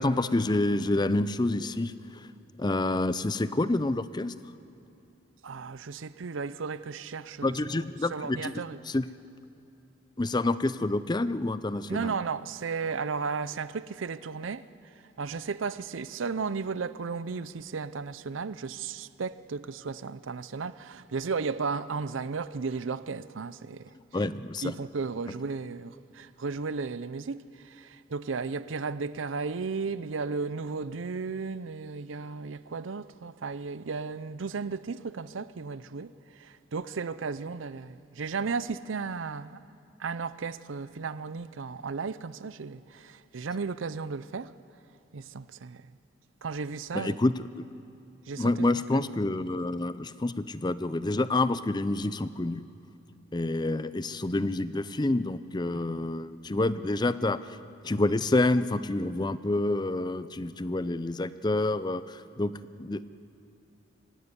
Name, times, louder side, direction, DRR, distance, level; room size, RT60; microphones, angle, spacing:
voice 1, 0.0-2.3 2.6-4.3 7.4-8.6 8.9-9.1 10.2-12.1 24.1-24.7 46.9-47.3 48.4-52.6 53.3-57.4 57.8-62.5 62.8-63.0, left 2 dB, 20° left, 0.5 m, -28 dB
voice 2, 5.4-7.6 8.0-8.8 11.9-14.7 15.2-24.2 24.6-39.6 40.0-44.5 45.1-45.9 46.4-47.2 48.3-49.0, right 5 dB, 85° right, 0.6 m, -34 dB
24.5 x 15.0 x 9.9 m
head